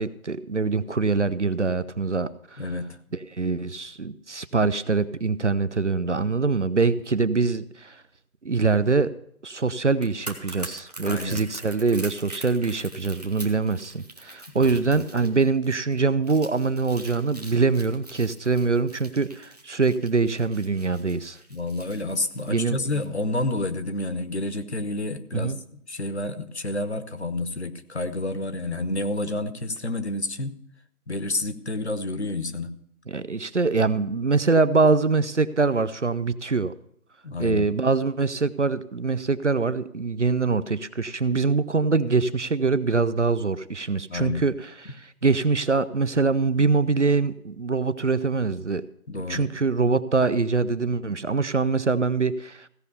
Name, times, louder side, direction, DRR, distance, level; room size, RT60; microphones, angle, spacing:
voice 1, 0.0-2.6 3.1-8.0 8.4-9.1 9.4-21.4 22.5-23.1 25.3-25.6 33.1-36.7 37.4-48.8 49.3-52.7, right 4 dB, 55° right, 15 dB, 0.6 m, -24 dB
voice 2, 2.6-2.9 11.0-11.4 14.5-15.0 21.5-30.5 31.1-32.7 37.2-37.7 44.1-44.5 49.1-49.5, left 2 dB, 45° left, 11 dB, 1.0 m, -29 dB
sound 1, 9.9-23.0 23.3-23.5, right 1 dB, 25° right, 1.1 m, -43 dB
16.0 x 5.6 x 6.8 m, 0.71 s
figure-of-eight pair, 175°, 44 cm